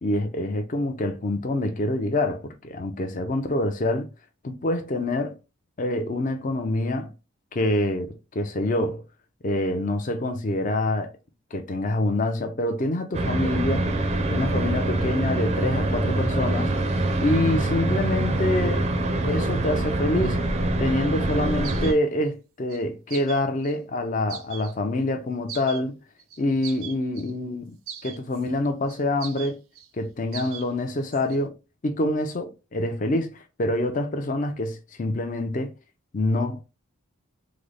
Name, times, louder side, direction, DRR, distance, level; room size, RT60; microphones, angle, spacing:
voice 1, 0.0-4.1 4.4-5.4 5.8-7.1 7.5-9.0 9.4-11.1 11.5-13.9 14.3-16.7 17.2-18.9 19.2-20.4 20.8-26.0 26.4-27.8 28.0-29.6 29.9-31.5 31.8-35.7 36.1-36.6, left 1 dB, 35° left, 0.5 m, -26 dB
sound 1, 13.1-21.9, right 1 dB, 30° right, 0.5 m, -24 dB
sound 2, 21.6-22.0 22.7-22.8 23.1-23.8 24.3-24.7 25.5-25.8 26.2-27.3 27.9-28.5 28.9-29.9 30.3-30.7 31.0-31.4, right 9 dB, 75° right, 0.5 m, -40 dB
3.7 x 2.1 x 3.2 m
head